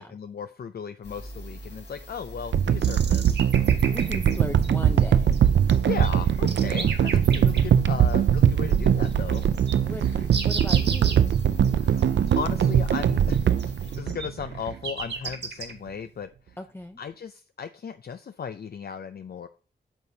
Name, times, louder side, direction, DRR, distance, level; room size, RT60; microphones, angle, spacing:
voice 1, 0.0-3.4 5.8-9.5 11.8-12.0 12.4-13.4 14.0-16.6 17.0-19.5, left 7 dB, 60° left, 10 dB, 0.5 m, -36 dB
sound 1, 1.0-14.0, left 1 dB, 75° left, 3.7 m, -45 dB
sound 2, 2.5-14.7 15.3-15.4, right 9 dB, 85° right, 0.5 m, -21 dB
sound 3, 2.8-4.7 5.0-5.4 5.7-7.6 8.1-8.2 8.7-8.8 9.0-11.4 11.6-11.7 12.0-12.1 12.3-12.4 12.6-13.0 13.3-15.7, right 4 dB, 70° right, 1.6 m, -35 dB
voice 2, 3.9-5.6 6.6-6.9 9.8-11.3 14.1-14.2 16.6-17.0, left 1 dB, 10° left, 5 dB, 0.6 m, -38 dB
8.9 x 6.7 x 2.8 m, 0.37 s
cardioid pair, 60°, 18 cm